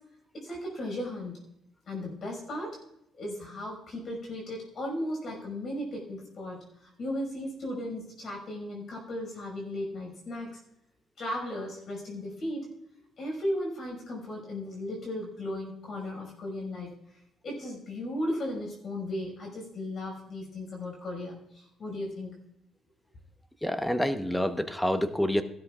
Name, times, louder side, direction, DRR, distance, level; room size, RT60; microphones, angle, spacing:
voice 1, 0.4-1.4 1.9-2.8 3.1-10.6 11.2-12.7 13.2-16.9 17.4-22.4, left 1 dB, 50° left, 0 dB, 5.6 m, -36 dB
voice 2, 23.6-25.4, equal, 5° left, 9 dB, 1.0 m, -27 dB
16.5 x 12.5 x 2.4 m, 0.82 s
cardioid pair, 85°, 0 cm